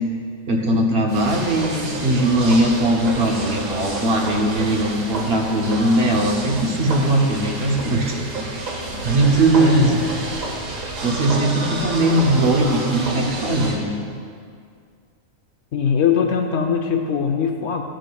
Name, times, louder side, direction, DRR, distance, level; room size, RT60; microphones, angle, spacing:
voice 1, 0.5-8.5 9.0-9.9 11.0-13.9, right 1 dB, 55° right, 0 dB, 1.0 m, -19 dB
sound 1, 1.1-13.8, right 2 dB, 85° right, 1.5 m, -29 dB
voice 2, 9.6-10.0 15.7-17.8, left 6 dB, 65° left, 3 dB, 0.8 m, -21 dB
12.0 x 6.3 x 2.3 m, 2.2 s
omnidirectional pair, 1.4 m